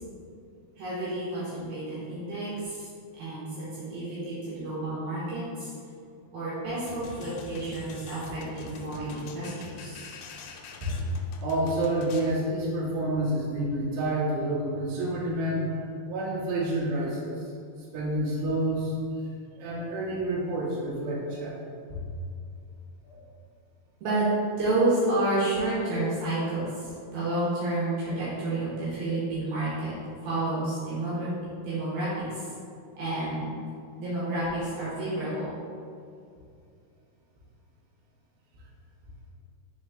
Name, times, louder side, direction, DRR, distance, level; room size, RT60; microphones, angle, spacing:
voice 1, 0.8-2.9 3.2-5.7 6.3-10.1 10.8-11.0 19.5-19.8 23.0-23.3 24.0-24.3 24.6-29.9 30.2-31.3 31.6-32.5 33.0-33.4 34.0-35.5, right 2 dB, 70° right, -10 dB, 3.1 m, -30 dB
sound 1, 6.9-12.4, left 5 dB, 90° left, 2.7 m, -44 dB
voice 2, 11.4-15.7 16.1-17.4 17.9-18.9 19.6-21.5, right 1 dB, 85° right, -4 dB, 3.3 m, -28 dB
6.3 x 4.2 x 3.7 m, 2.4 s
omnidirectional pair, 4.7 m